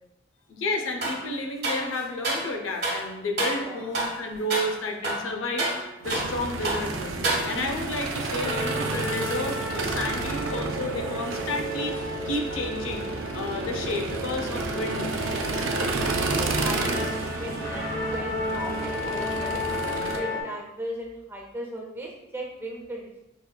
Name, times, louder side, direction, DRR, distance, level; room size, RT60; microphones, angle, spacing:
voice 1, 0.5-12.0 12.2-15.3, left 2 dB, 85° left, 3 dB, 0.5 m, -31 dB
sound 1, 1.0-1.2 1.6-2.5 2.8-3.0 3.4-3.6 3.9-4.2 4.5-4.7 5.0-6.4 6.6-6.9 7.2-7.8, right 2 dB, 55° right, 1.1 m, -28 dB
sound 2, 6.0-20.2, right 3 dB, 85° right, 0.4 m, -31 dB
sound 3, 8.4-20.4, left 1 dB, 45° left, 0.7 m, -33 dB
voice 2, 15.7-19.6 20.1-23.2, equal, 10° right, -2 dB, 0.5 m, -38 dB
5.5 x 2.2 x 2.2 m, 0.89 s
head